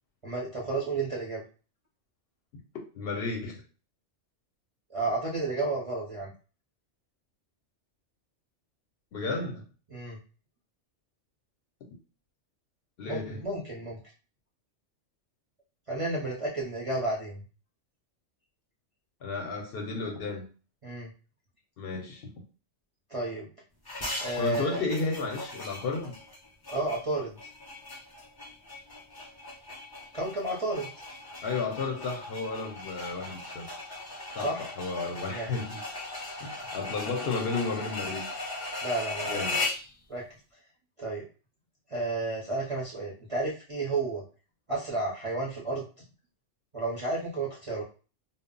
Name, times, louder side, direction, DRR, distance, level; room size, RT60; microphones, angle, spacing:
voice 1, 0.2-1.4 4.9-6.3 9.9-10.2 13.1-14.0 15.9-17.4 20.8-21.1 23.1-23.5 24.2-24.8 26.7-27.4 30.1-30.9 34.4-34.7 35.3-35.5 38.8-39.4 40.1-40.2 41.0-41.2 41.9-44.2 44.7-45.8 46.7-47.8, right 2 dB, 40° right, 0.5 m, -32 dB
voice 2, 3.0-3.6 9.1-9.6 13.0-13.4 19.2-20.4 21.8-22.3 24.4-26.1 31.4-33.7 34.3-35.8 36.4-38.3 39.3-39.6, left 3 dB, 65° left, 0.7 m, -33 dB
sound 1, 23.9-39.9, left 2 dB, 40° left, 0.3 m, -38 dB
2.0 x 2.0 x 3.6 m
omnidirectional pair, 1.2 m